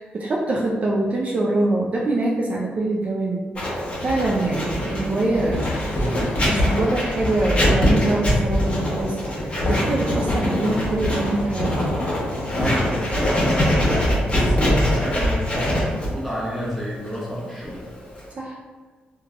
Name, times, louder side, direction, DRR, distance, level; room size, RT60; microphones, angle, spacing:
voice 1, 0.0-5.9 6.4-11.9 18.4-18.6, right 2 dB, 40° right, -3 dB, 0.3 m, -24 dB
Writing, 3.6-18.3, left 1 dB, 35° left, 0.9 m, -23 dB
sound 1, 4.4-13.1, left 2 dB, 90° left, 0.4 m, -37 dB
voice 2, 12.5-17.9, equal, ahead, -6 dB, 0.8 m, -30 dB
3.2 x 2.2 x 2.4 m, 1.4 s
cardioid pair, 115°, 3 cm